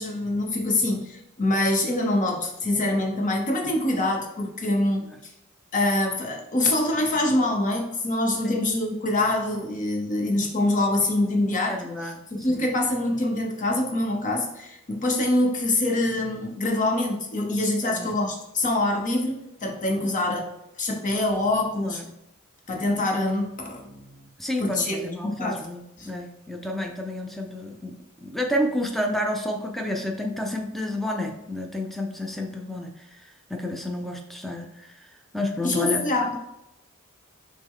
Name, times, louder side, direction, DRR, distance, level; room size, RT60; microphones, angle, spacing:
voice 1, 0.0-5.1 5.7-20.5 20.8-22.0 22.7-24.2 24.6-25.7 26.0-26.1 35.6-36.4, left 1 dB, 35° left, 1 dB, 0.9 m, -25 dB
voice 2, 11.7-12.2 17.8-18.2 21.8-22.1 24.4-32.9 33.5-34.9 35.3-36.0, left 1 dB, ahead, 2 dB, 0.4 m, -30 dB
6.2 x 2.2 x 3.6 m, 0.85 s
head